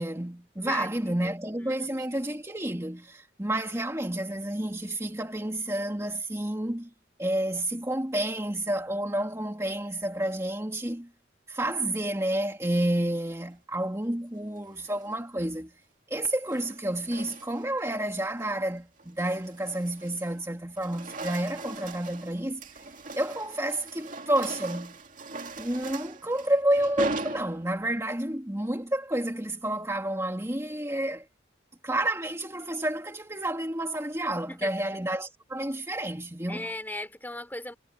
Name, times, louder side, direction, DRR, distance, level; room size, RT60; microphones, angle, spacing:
voice 1, 0.0-6.9 7.2-11.1 11.5-15.7 16.1-22.6 23.1-24.9 25.6-31.2 31.8-36.6, right 1 dB, 15° right, 2.4 m, -30 dB
voice 2, 0.6-2.1 34.5-34.9 36.5-37.7, left 1 dB, 10° left, 4.3 m, -38 dB
sound 1, 14.6-15.1 16.2-17.8 18.2-18.5 19.0-20.4 20.7-28.0, right 3 dB, 45° right, 2.5 m, -39 dB
head